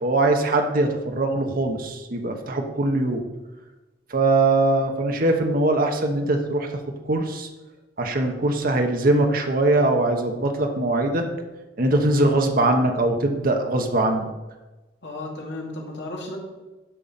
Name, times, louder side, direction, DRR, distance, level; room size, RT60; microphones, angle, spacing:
voice 1, 0.0-3.2 4.1-6.7 7.0-7.5 8.0-11.3 11.8-14.3, right 2 dB, 50° right, 3 dB, 1.1 m, -21 dB
voice 2, 15.0-16.4, left 2 dB, 70° left, -1 dB, 2.3 m, -34 dB
11.5 x 5.8 x 5.2 m, 1.1 s
head